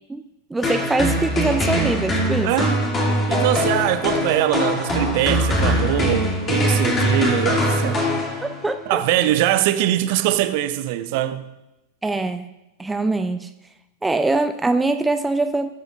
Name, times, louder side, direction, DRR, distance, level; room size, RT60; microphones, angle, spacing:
voice 1, 0.5-2.6 8.4-9.0 12.0-12.4 12.8-13.5 14.0-15.7, right 2 dB, 10° right, 0.5 m, -23 dB
sound 1, 0.6-8.8, equal, 20° left, 2.4 m, -22 dB
voice 2, 2.4-2.8 3.3-8.1 8.9-11.5, right 12 dB, 50° right, 0.8 m, -22 dB
20.5 x 8.1 x 2.5 m
figure-of-eight pair, 90°, 0 cm